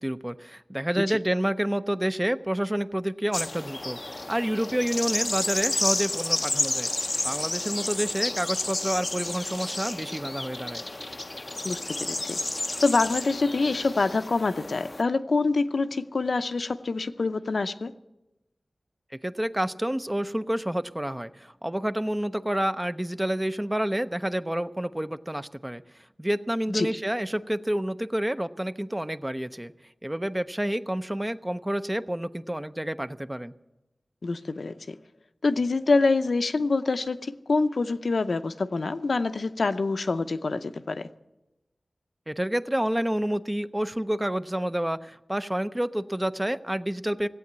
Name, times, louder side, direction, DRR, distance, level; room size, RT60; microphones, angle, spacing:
voice 1, 0.0-4.0 4.3-6.9 7.2-10.8 19.2-25.8 26.2-29.7 30.0-33.5 42.3-47.3, right 1 dB, 15° right, 11 dB, 0.5 m, -29 dB
sound 1, 3.3-15.0, left 2 dB, 35° left, 0.5 m, -31 dB
voice 2, 11.6-12.4 12.8-17.9 26.7-26.9 34.2-35.0 35.4-41.1, left 3 dB, 75° left, 9 dB, 0.6 m, -26 dB
16.5 x 8.4 x 9.4 m, 0.99 s
wide cardioid pair, 80°, 0 cm